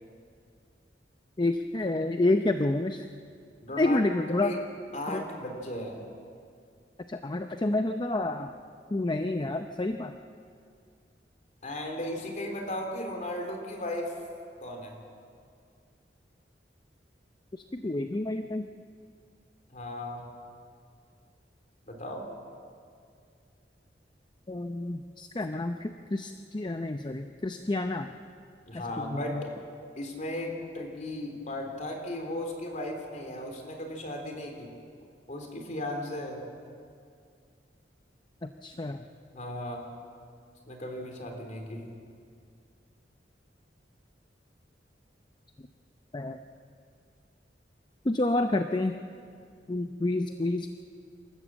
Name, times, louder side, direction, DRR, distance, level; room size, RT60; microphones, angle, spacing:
voice 1, 1.4-3.1 3.8-4.6 5.1-5.2 7.1-8.5 8.9-10.1 17.5-18.7 24.5-28.1 28.7-29.4 38.4-39.0 46.1-46.4 48.0-49.0 49.7-50.7, left 2 dB, 25° left, 7 dB, 0.6 m, -29 dB
voice 2, 3.6-4.0 4.4-4.6 4.9-6.1 11.6-14.2 14.6-15.0 19.7-20.3 21.9-22.3 28.7-29.5 30.0-34.7 35.3-36.5 39.3-39.9 40.7-42.0, left 1 dB, 45° left, 3 dB, 3.4 m, -36 dB
27.0 x 14.0 x 7.5 m, 2.3 s
head